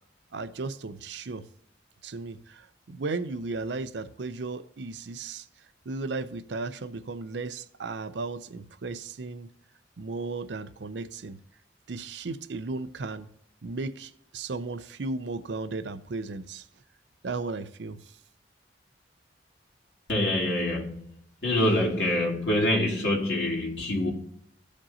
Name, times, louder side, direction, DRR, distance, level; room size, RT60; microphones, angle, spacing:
voice 1, 0.3-1.5 2.0-5.5 5.9-9.5 10.0-11.4 11.9-13.3 13.6-16.6 17.2-18.0, right 3 dB, 75° right, 0.5 m, -35 dB
voice 2, 20.1-21.0 21.4-24.1, left 1 dB, 70° left, 2.6 m, -25 dB
15.0 x 5.1 x 2.8 m
head